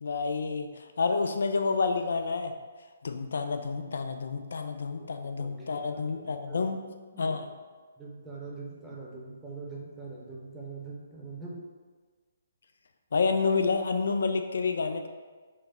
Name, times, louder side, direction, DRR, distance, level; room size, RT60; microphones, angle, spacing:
voice 1, 0.0-2.5 3.0-6.8 7.2-7.5 13.1-15.1, left 4 dB, 60° left, 6 dB, 0.3 m, -29 dB
voice 2, 5.4-6.7 7.1-7.4 8.0-11.6, right 3 dB, 5° right, -5 dB, 0.8 m, -43 dB
4.7 x 2.1 x 4.2 m, 1.5 s
figure-of-eight pair, 135°, 0 cm